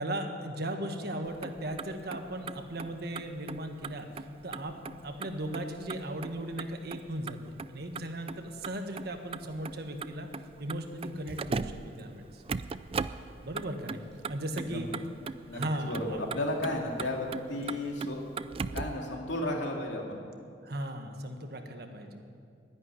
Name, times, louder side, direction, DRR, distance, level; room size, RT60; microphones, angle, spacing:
voice 1, 0.0-4.1 4.4-4.7 5.0-7.4 7.7-10.3 10.6-12.4 13.4-14.0 14.3-14.9 15.5-16.2 20.6-22.2, right 1 dB, 55° right, 5 dB, 1.5 m, -37 dB
Motor vehicle (road), 1.3-19.0, right 4 dB, 30° right, 0.3 m, -40 dB
voice 2, 15.4-18.2 18.7-20.2, left 1 dB, 75° left, 0 dB, 2.7 m, -33 dB
12.5 x 10.5 x 9.9 m, 2.3 s
head